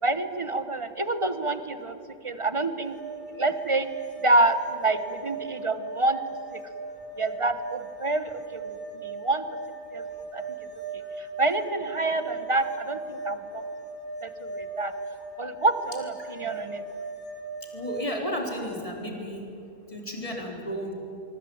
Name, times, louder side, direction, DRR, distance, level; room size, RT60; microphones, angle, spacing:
voice 1, 0.0-2.0 2.2-2.9 3.3-3.9 4.2-6.2 6.5-6.6 7.2-9.4 9.9-10.5 10.9-13.6 14.2-15.0 15.4-16.8, right 2 dB, 25° right, 10 dB, 1.3 m, -27 dB
sound 1, 2.8-18.2, right 4 dB, 85° left, 3.4 m, -38 dB
voice 2, 17.7-19.5 19.9-20.9, equal, 25° left, 1 dB, 4.3 m, -33 dB
25.0 x 24.0 x 8.9 m, 2.8 s
omnidirectional pair, 1.3 m